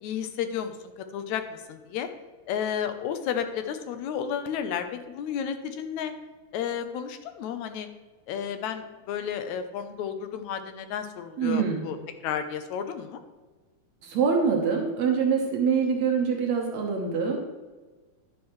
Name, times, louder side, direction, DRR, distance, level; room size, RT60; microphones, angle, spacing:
voice 1, 0.0-2.1 2.5-6.1 6.5-7.9 8.3-12.0 12.2-13.2, left 8 dB, 80° left, 8 dB, 2.1 m, -32 dB
voice 2, 11.4-11.8 14.0-17.4, right 6 dB, 70° right, 1 dB, 2.4 m, -25 dB
11.0 x 9.6 x 3.2 m, 1.3 s
omnidirectional pair, 3.3 m